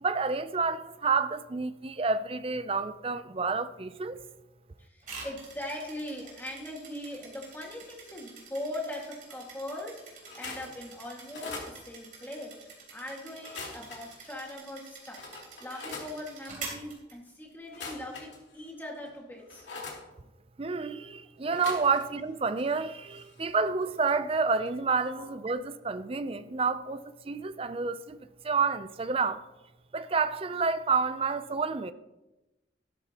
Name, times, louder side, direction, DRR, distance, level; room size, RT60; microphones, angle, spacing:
voice 1, 0.0-4.2 20.6-29.4 29.9-31.9, right 4 dB, 30° right, 0.5 m, -29 dB
voice 2, 4.8-15.2 15.6-19.7 25.1-25.3, left 1 dB, 10° left, 1.9 m, -40 dB
sound 1, 5.0-17.7, right 4 dB, 45° right, 3.5 m, -47 dB
sound 2, 10.2-10.7 11.2-11.7 13.3-14.2 14.7-14.8 15.2-16.1 17.6-18.6 19.1-20.0 21.4-22.3 22.5-24.2 24.5-24.7 25.0-25.1, left 3 dB, 75° left, 2.9 m, -43 dB
13.5 x 12.5 x 2.9 m
head